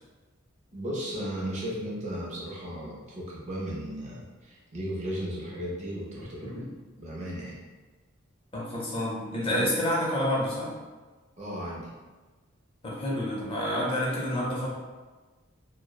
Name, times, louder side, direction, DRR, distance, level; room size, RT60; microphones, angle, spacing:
voice 1, 0.7-6.6 7.0-7.6 11.4-11.9, equal, 35° right, -5 dB, 0.5 m, -35 dB
voice 2, 8.5-10.7 12.8-14.7, equal, 25° left, -5 dB, 0.5 m, -28 dB
2.8 x 2.0 x 2.2 m, 1.3 s
head